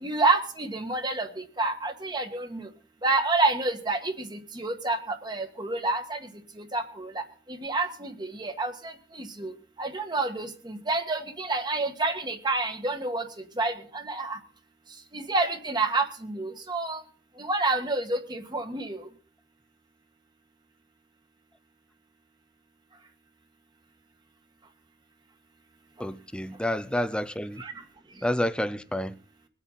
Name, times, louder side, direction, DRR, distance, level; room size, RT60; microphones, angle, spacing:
voice 1, 0.0-2.7 3.0-6.2 6.7-7.2 7.5-9.5 9.8-13.3 13.6-14.4 15.1-17.0 17.4-19.0 27.6-27.7, right 3 dB, 25° right, 1.7 m, -28 dB
voice 2, 26.0-27.6 28.2-29.1, left 1 dB, 5° left, 0.6 m, -29 dB
22.5 x 8.2 x 4.1 m
head